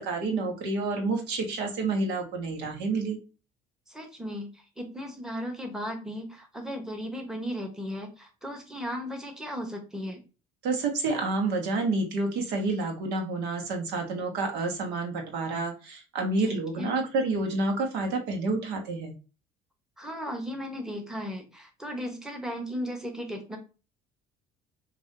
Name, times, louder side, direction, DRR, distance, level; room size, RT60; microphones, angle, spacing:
voice 1, 0.0-3.2 10.6-19.1, right 3 dB, 75° right, 3 dB, 1.2 m, -29 dB
voice 2, 3.9-4.5 4.8-10.2 16.4-16.9 20.0-23.6, equal, 5° right, 2 dB, 1.2 m, -36 dB
4.8 x 2.6 x 2.7 m, 0.32 s
supercardioid pair, 80°, 18 cm